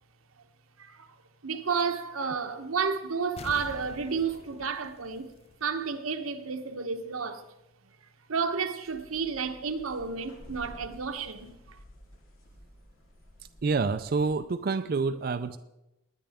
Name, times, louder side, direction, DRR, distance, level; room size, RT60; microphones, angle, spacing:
voice 1, 0.8-1.1 1.4-5.3 5.6-7.5 8.3-11.8, right 5 dB, 90° right, 1.0 m, -31 dB
sound 1, 3.4-6.0 6.3-6.4, left 3 dB, 30° left, 0.5 m, -46 dB
sound 2, 8.8-14.4, equal, 80° left, 2.1 m, -52 dB
voice 2, 13.6-15.6, right 4 dB, 45° right, 0.4 m, -27 dB
19.0 x 10.0 x 3.5 m
head